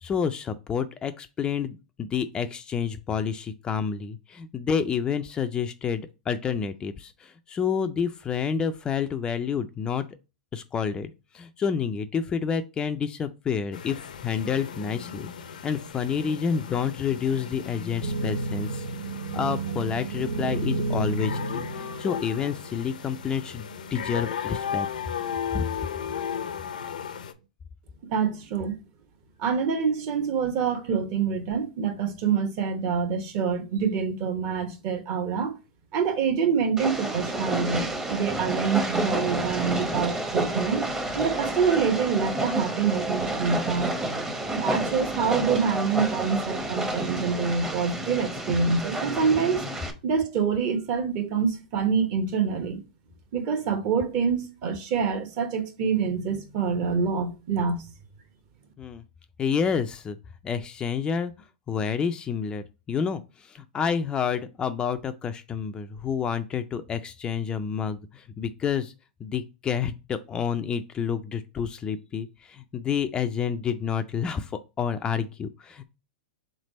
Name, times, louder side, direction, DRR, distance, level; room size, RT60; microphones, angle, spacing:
voice 1, 0.0-10.1 10.5-15.3 15.6-18.8 19.3-24.9 25.5-25.6 58.8-59.0 59.4-60.2 60.4-61.3 61.7-68.9 69.2-75.8, left 7 dB, 20° left, 0.3 m, -29 dB
sound 1, 13.7-27.3, left 8 dB, 85° left, 0.6 m, -36 dB
sound 2, 18.0-22.8 23.5-23.6 24.8-25.3 26.0-26.4, right 3 dB, 75° right, 0.5 m, -31 dB
voice 2, 28.1-28.8 29.4-35.5 35.9-43.9 44.5-49.6 50.0-52.8 53.3-57.8, right 6 dB, 45° right, 0.9 m, -26 dB
Train, 36.8-49.9, right 1 dB, 15° right, 0.7 m, -30 dB
3.6 x 3.3 x 4.1 m
hypercardioid pair, 130°, 4 cm